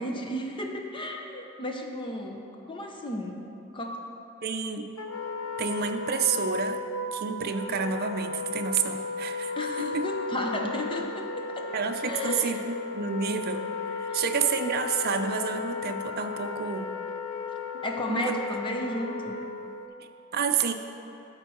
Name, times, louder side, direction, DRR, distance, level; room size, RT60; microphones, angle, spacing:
voice 1, 0.0-3.4 3.7-4.1 9.6-11.7 12.0-12.6 14.1-14.2 17.8-19.4, left 1 dB, 25° left, 2 dB, 0.8 m, -33 dB
voice 2, 4.4-4.9 5.6-6.8 7.1-10.1 11.7-17.0 18.1-18.4 20.3-20.7, right 6 dB, 50° right, 6 dB, 0.6 m, -29 dB
Wind instrument woodwind instrument, 5.0-19.8, left 4 dB, 80° left, 0.6 m, -35 dB
12.0 x 4.6 x 6.2 m, 2.8 s
head